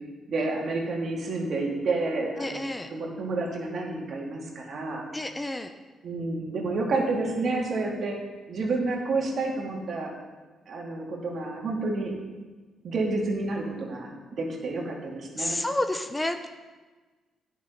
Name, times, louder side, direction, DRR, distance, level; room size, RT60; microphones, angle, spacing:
voice 1, 0.3-5.1 6.0-8.2 8.5-10.2 10.7-12.2 12.8-15.6, right 3 dB, 60° right, 0 dB, 2.3 m, -29 dB
voice 2, 2.4-2.9 5.1-5.7 15.4-16.5, left 1 dB, 15° left, 8 dB, 0.7 m, -30 dB
9.5 x 6.1 x 5.8 m, 1.3 s
cardioid pair, 75°, 0 cm